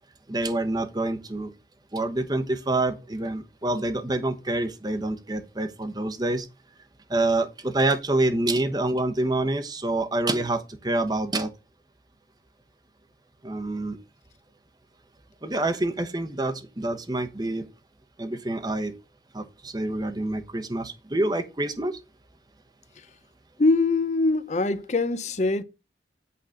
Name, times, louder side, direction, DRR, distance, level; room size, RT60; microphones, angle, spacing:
voice 1, 0.3-1.5 1.9-6.5 7.1-11.5 13.4-14.0 15.4-17.7 18.2-18.9 19.3-22.0, right 2 dB, 25° right, 0.9 m, -27 dB
voice 2, 23.6-25.6, left 3 dB, 40° left, 0.6 m, -23 dB
8.5 x 3.9 x 6.4 m
head